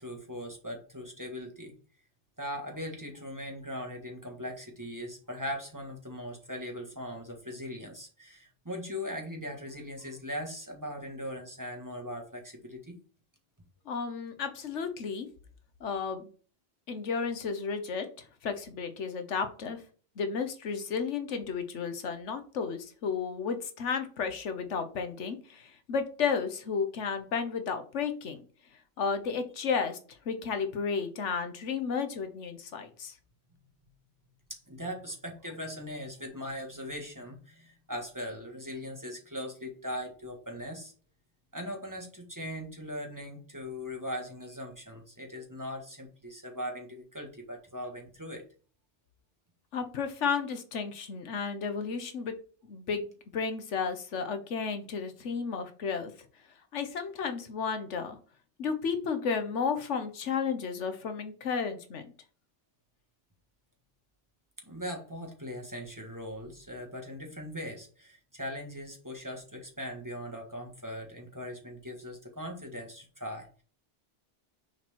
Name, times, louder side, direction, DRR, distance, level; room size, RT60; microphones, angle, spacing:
voice 1, 0.0-1.7 2.4-13.0 34.5-40.9 41.5-48.5 64.6-73.6, equal, 15° right, 1 dB, 1.6 m, -40 dB
voice 2, 13.9-15.3 15.8-16.3 16.9-19.8 20.2-28.4 29.0-33.2 49.7-52.3 52.7-56.1 56.7-58.2 58.6-62.1, left 5 dB, 90° left, 8 dB, 1.3 m, -33 dB
6.4 x 4.5 x 4.3 m, 0.39 s
omnidirectional pair, 1.2 m